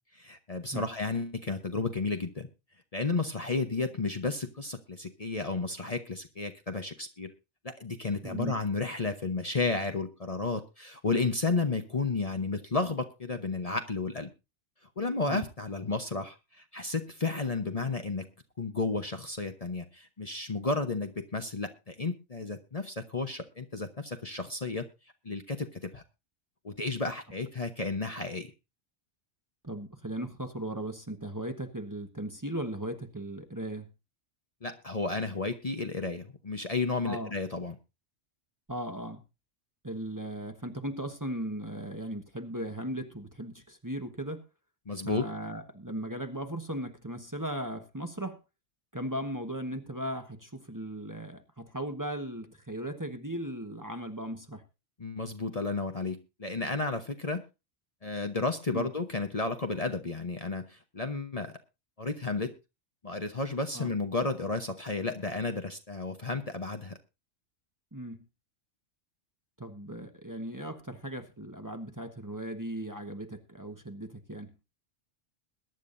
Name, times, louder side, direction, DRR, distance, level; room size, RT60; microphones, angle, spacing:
voice 1, 0.1-2.5 2.9-7.3 7.6-14.3 15.0-18.3 18.6-24.9 25.2-26.0 26.6-28.5 34.6-37.8 44.9-45.3 55.0-57.4 58.0-61.6 62.0-62.5 63.0-67.0, left 3 dB, 35° left, 6 dB, 1.0 m, -32 dB
voice 2, 8.2-8.5 15.3-15.4 29.6-33.9 37.0-37.3 38.7-39.2 39.8-44.4 45.0-48.4 48.9-54.6 58.7-58.9 63.7-63.9 67.9-68.2 69.6-74.5, right 1 dB, 15° right, 6 dB, 1.2 m, -37 dB
21.5 x 10.5 x 2.6 m, 0.27 s
omnidirectional pair, 1.2 m